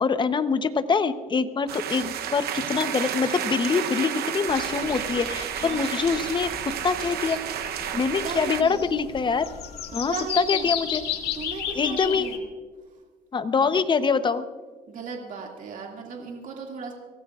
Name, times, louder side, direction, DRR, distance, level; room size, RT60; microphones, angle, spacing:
voice 1, 0.0-7.4 7.9-9.5 9.9-11.0 11.7-12.3 13.3-14.4, left 5 dB, 30° left, 11 dB, 0.8 m, -24 dB
sound 1, 1.7-8.6, right 10 dB, 65° right, 0.9 m, -31 dB
sound 2, 4.5-12.4, left 9 dB, 70° left, 1.8 m, -34 dB
voice 2, 8.2-8.8 10.1-10.7 11.3-12.4 13.6-13.8 14.9-16.9, right 4 dB, 50° right, 0 dB, 2.3 m, -36 dB
23.5 x 17.0 x 2.4 m, 1.5 s
cardioid pair, 110°, 17 cm